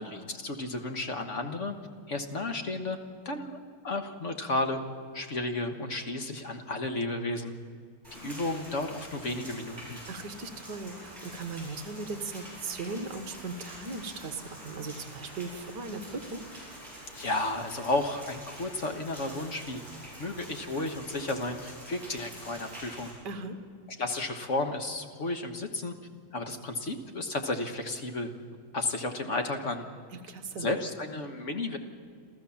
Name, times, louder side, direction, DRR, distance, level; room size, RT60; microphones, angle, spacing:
voice 1, 0.0-1.8 2.1-3.0 3.2-3.6 3.8-4.8 5.1-7.5 8.1-10.0 17.1-19.8 20.2-23.1 24.0-25.9 26.3-28.3 28.7-29.8 30.6-31.8, left 2 dB, 40° left, 6 dB, 1.4 m, -33 dB
Rain, 8.0-23.1, equal, 15° right, 7.7 m, -46 dB
voice 2, 10.1-16.4 23.2-23.6 30.1-30.7, right 3 dB, 55° right, 8 dB, 1.8 m, -38 dB
28.0 x 13.5 x 7.2 m, 2.2 s
omnidirectional pair, 2.4 m